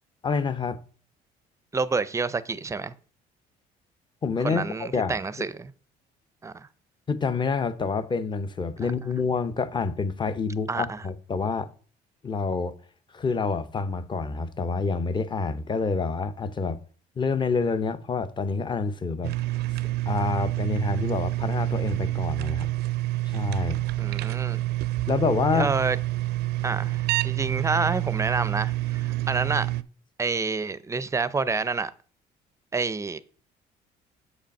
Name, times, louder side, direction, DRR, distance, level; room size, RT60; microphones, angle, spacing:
voice 1, 0.2-0.8 4.2-5.2 7.1-11.7 12.2-12.7 13.1-16.8 17.2-19.3 20.1-22.7 23.3-23.8 25.1-25.7, left 4 dB, 25° left, 0.7 m, -27 dB
voice 2, 1.7-2.9 4.4-5.7 6.4-6.7 8.8-8.9 10.7-11.0 24.0-24.6 25.5-26.0 26.6-29.7 30.2-31.9 32.7-33.2, right 4 dB, 15° right, 0.5 m, -28 dB
sound 1, 19.2-29.8, right 17 dB, 75° right, 0.4 m, -28 dB
6.9 x 5.1 x 5.3 m
cardioid pair, 110°, 17 cm